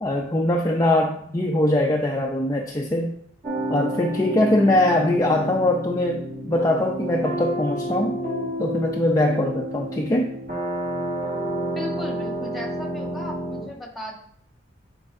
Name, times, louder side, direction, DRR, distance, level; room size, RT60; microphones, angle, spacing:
voice 1, 0.0-3.1 3.7-8.2 8.6-10.3, left 1 dB, 20° left, 0 dB, 0.4 m, -22 dB
sound 1, 3.4-13.6, right 1 dB, 45° right, 2.1 m, -30 dB
voice 2, 11.7-14.2, left 1 dB, ahead, -1 dB, 1.2 m, -36 dB
8.4 x 4.5 x 2.6 m, 0.70 s
head